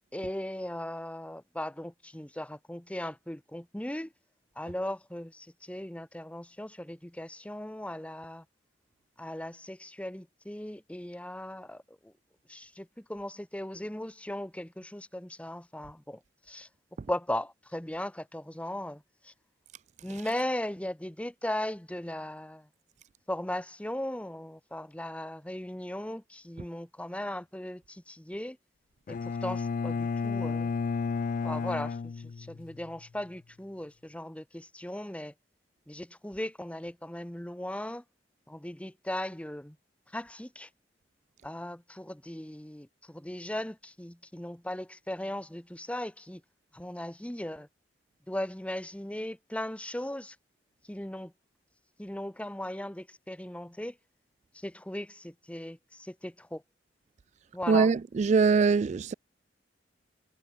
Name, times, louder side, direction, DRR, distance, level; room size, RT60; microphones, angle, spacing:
voice 1, 0.1-4.1 4.6-8.4 9.2-12.1 12.5-16.2 16.5-16.7 17.1-19.3 20.0-22.7 23.3-28.6 29.1-30.7 31.4-35.3 35.9-38.0 38.5-39.8 40.1-40.7 41.4-46.4 46.7-47.7 48.3-50.4 50.9-51.3 52.0-54.0 54.5-56.6 57.5-57.9, left 1 dB, 5° left, 0.9 m, -38 dB
Bowed string instrument, 29.1-32.9, left 5 dB, 45° left, 0.3 m, -32 dB
voice 2, 57.7-59.1, right 5 dB, 40° right, 0.3 m, -23 dB
head